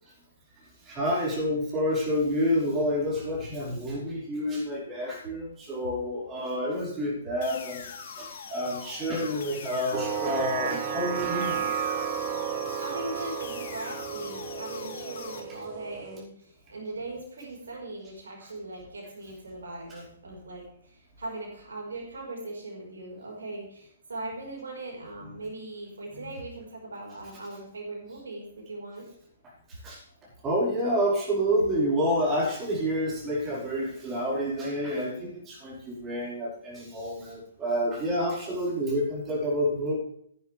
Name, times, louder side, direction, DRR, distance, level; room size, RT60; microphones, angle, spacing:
voice 1, 0.8-7.9 8.2-11.7 19.9-20.0 29.8-30.0 30.4-39.9, equal, 20° right, -5 dB, 5.0 m, -28 dB
sound 1, 7.4-15.4, left 6 dB, 50° left, 2.3 m, -42 dB
sound 2, 9.9-16.2, right 8 dB, 35° right, 1.0 m, -32 dB
voice 2, 12.4-29.0, right 2 dB, 65° right, -1 dB, 4.7 m, -40 dB
15.0 x 10.5 x 3.5 m, 0.70 s
figure-of-eight pair, 120°, 0 cm